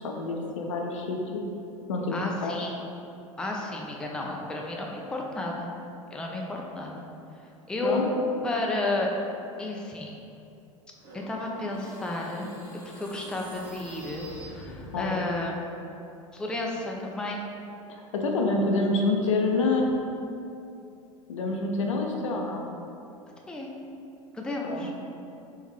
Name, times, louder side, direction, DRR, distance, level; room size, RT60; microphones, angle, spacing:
voice 1, 0.0-1.4 1.9-2.7 7.8-8.1 14.9-15.2 17.9-19.8 21.3-22.7 24.6-24.9, left 3 dB, 65° left, 1 dB, 0.5 m, -27 dB
voice 2, 2.1-2.8 3.4-5.7 6.1-7.0 7.7-8.1 8.4-9.1 9.6-10.1 11.1-12.5 13.0-15.6 16.3-17.4 23.5-23.7 24.3-24.9, left 2 dB, 5° left, -1 dB, 0.4 m, -32 dB
sound 1, 11.0-15.2, left 1 dB, 20° right, 1.4 m, -45 dB
3.5 x 3.4 x 3.2 m, 2.7 s
figure-of-eight pair, 75°, 17 cm